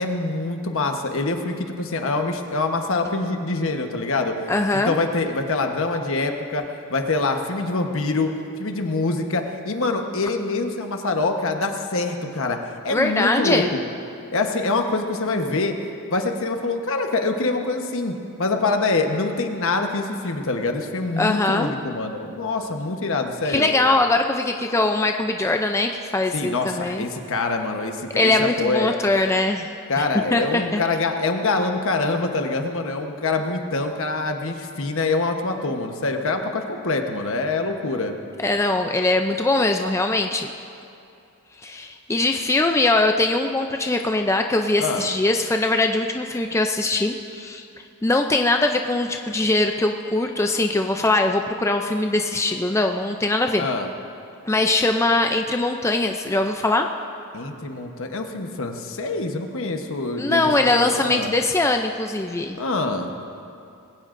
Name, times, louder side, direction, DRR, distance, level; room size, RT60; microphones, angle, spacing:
voice 1, 0.0-4.4 4.9-6.6 6.9-8.3 8.6-12.6 12.8-13.6 14.3-15.7 16.1-23.7 26.3-28.9 29.9-38.1 44.8-45.0 53.6-53.9 57.3-61.3 62.6-63.1, left 3 dB, 65° left, 4 dB, 1.1 m, -25 dB
voice 2, 4.5-4.9 12.9-13.7 21.2-21.7 23.4-27.1 28.2-29.7 30.0-30.1 30.3-30.8 38.4-40.5 41.6-47.7 48.0-53.7 54.4-56.9 60.2-62.6, left 2 dB, 15° left, 4 dB, 0.4 m, -21 dB
21.0 x 17.0 x 2.6 m, 2.6 s
head